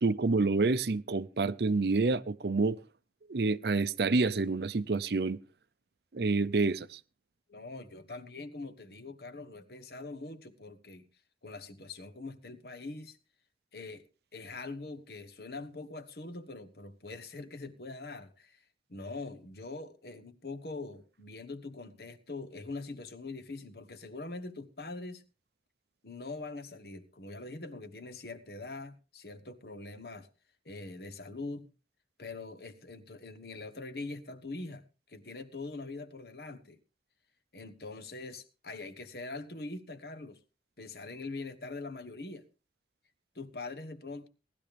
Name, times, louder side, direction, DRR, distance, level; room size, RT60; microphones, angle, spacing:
voice 1, 0.0-2.8 3.3-5.4 6.1-7.0, right 3 dB, 65° right, 0.6 m, -28 dB
voice 2, 7.5-11.1 11.4-13.2 13.7-14.0 14.3-18.6 18.9-25.2 26.0-30.3 30.6-31.7 32.2-34.8 35.1-36.8 37.5-40.4 40.8-42.4 43.3-44.3, left 3 dB, 60° left, 1.2 m, -43 dB
18.0 x 12.0 x 3.4 m
head